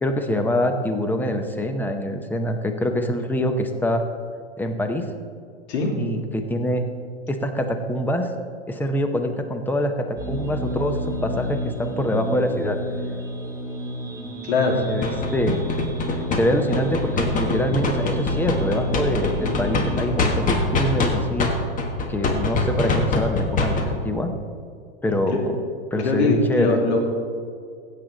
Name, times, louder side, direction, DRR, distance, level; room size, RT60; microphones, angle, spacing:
voice 1, 0.0-4.0 4.6-5.0 6.0-6.8 7.3-8.3 8.7-12.8 14.9-15.6 16.3-21.5 22.1-24.3 25.0-25.4 25.9-26.8, left 1 dB, 5° left, 6 dB, 0.7 m, -24 dB
sound 1, 10.2-20.0, equal, 10° right, 1.8 m, -30 dB
voice 2, 14.4-14.8 25.3-25.4 26.0-27.0, left 3 dB, 65° left, 0 dB, 2.7 m, -21 dB
sound 2, 15.0-21.1 21.4-23.8, left 3 dB, 25° left, 1.4 m, -23 dB
16.0 x 7.6 x 3.9 m, 2.2 s
hypercardioid pair, 125°, 35 cm